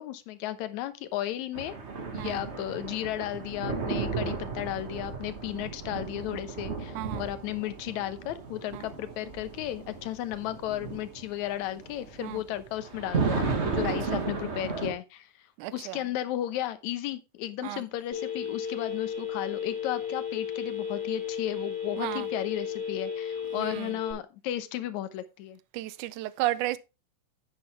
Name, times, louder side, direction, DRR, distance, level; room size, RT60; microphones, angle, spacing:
voice 1, 0.0-1.7 2.1-15.3 15.7-25.6, left 13 dB, 70° left, 2.1 m, -34 dB
sound 1, 1.5-14.9, right 4 dB, 50° right, 0.7 m, -34 dB
voice 2, 13.8-14.2 15.6-16.0 17.6-17.8 22.0-22.3 23.6-23.9 25.7-26.8, right 16 dB, 80° right, 2.0 m, -33 dB
Telephone, 18.1-24.1, left 7 dB, 5° left, 4.3 m, -34 dB
10.0 x 7.8 x 3.3 m
omnidirectional pair, 3.7 m